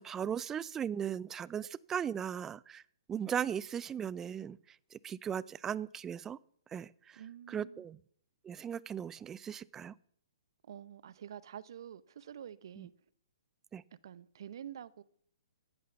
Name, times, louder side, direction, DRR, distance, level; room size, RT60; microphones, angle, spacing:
voice 1, 0.0-2.8 3.1-4.6 4.9-6.4 6.7-7.2 7.5-8.0 8.4-9.9 12.8-12.9 13.7-13.8, right 8 dB, 15° right, 0.4 m, -37 dB
voice 2, 7.1-7.8 10.6-12.9 14.0-15.0, right 9 dB, 60° right, 0.8 m, -48 dB
14.5 x 9.6 x 7.0 m
hypercardioid pair, 135°, 3 cm